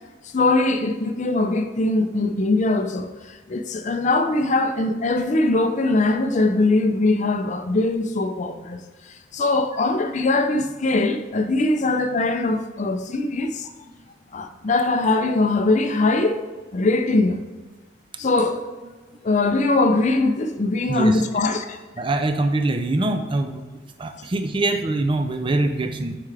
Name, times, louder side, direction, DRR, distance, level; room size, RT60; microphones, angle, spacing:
voice 1, 0.3-8.8 9.3-13.7 14.3-16.4 16.7-17.4 18.2-18.6 19.2-21.8, left 2 dB, 40° left, 0.5 m, -21 dB
voice 2, 20.9-21.2 22.0-23.6 24.0-26.2, right 2 dB, 30° right, 0.4 m, -23 dB
8.3 x 4.7 x 3.4 m
head